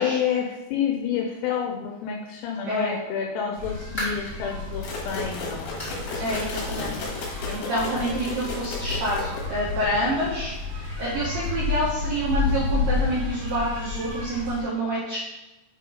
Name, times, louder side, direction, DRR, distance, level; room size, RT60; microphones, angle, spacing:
voice 1, 0.0-5.7 6.7-7.1, left 8 dB, 85° left, 1 dB, 3.4 m, -29 dB
voice 2, 2.6-2.9 6.2-15.2, right 1 dB, 75° right, -7 dB, 2.0 m, -28 dB
sound 1, 3.6-14.6, left 4 dB, 50° right, 2.9 m, -31 dB
sound 2, 4.0-4.4 4.9-5.0 5.8-6.1 6.4-6.5 7.0-7.1 8.2-8.3, equal, 35° left, 0.9 m, -34 dB
sound 3, 4.8-9.7, left 3 dB, 65° left, 3.5 m, -34 dB
7.3 x 3.9 x 5.0 m, 1.0 s
omnidirectional pair, 5.9 m